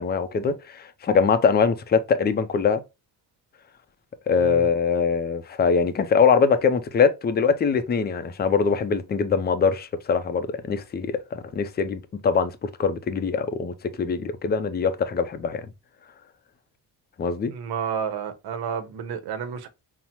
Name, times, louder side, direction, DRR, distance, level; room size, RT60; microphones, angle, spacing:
voice 1, 0.0-2.8 4.3-15.7 17.2-17.5, left 5 dB, 25° left, 0.4 m, -23 dB
voice 2, 17.4-19.7, right 7 dB, 85° right, 0.8 m, -31 dB
5.5 x 2.1 x 2.9 m
cardioid pair, 125°, 37 cm